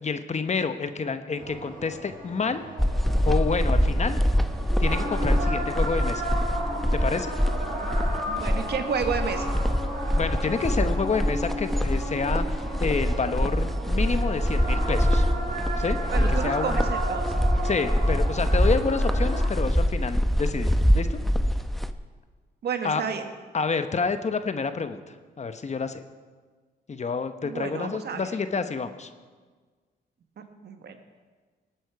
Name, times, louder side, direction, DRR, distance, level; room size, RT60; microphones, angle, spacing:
voice 1, 0.0-2.6 3.2-4.2 4.8-6.3 6.9-7.3 10.2-12.5 12.8-15.3 15.8-16.8 17.6-21.2 22.8-23.0 23.5-25.0 25.4-26.0 26.9-29.1, left 4 dB, 40° left, 10 dB, 1.0 m, -28 dB
sound 1, 1.3-19.5, right 1 dB, 45° right, 5.3 m, -34 dB
sound 2, 2.8-21.9, equal, ahead, 0.7 m, -25 dB
voice 2, 8.3-9.5 16.1-17.3 22.6-23.3 27.4-28.3 30.4-31.0, right 6 dB, 65° right, 6 dB, 1.5 m, -31 dB
19.0 x 9.0 x 4.8 m, 1.5 s
cardioid pair, 70°, 18 cm